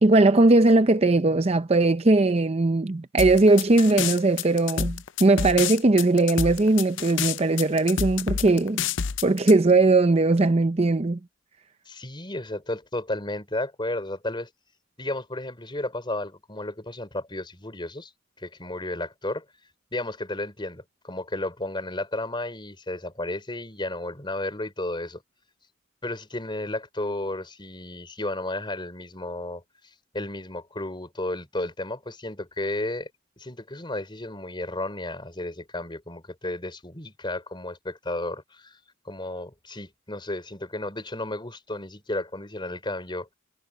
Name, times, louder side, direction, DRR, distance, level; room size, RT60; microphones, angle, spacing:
voice 1, 0.0-8.8 9.2-11.2, right 2 dB, 30° right, 0.6 m, -19 dB
sound 1, 3.2-9.5, left 7 dB, 70° left, 0.6 m, -28 dB
voice 2, 11.9-14.5 15.0-18.1 18.4-19.4 19.9-25.2 26.0-29.6 30.1-33.1 33.4-38.8 39.0-43.3, left 1 dB, 25° left, 4.4 m, -33 dB
head